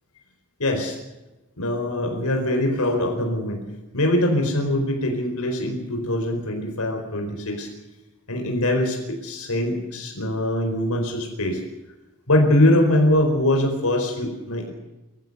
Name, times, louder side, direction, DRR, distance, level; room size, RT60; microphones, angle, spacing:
voice 1, 0.6-1.0 1.6-3.6 3.9-7.7 8.3-11.6 12.3-14.7, left 1 dB, 75° left, 3 dB, 4.6 m, -22 dB
24.0 x 15.5 x 8.0 m, 1.0 s
head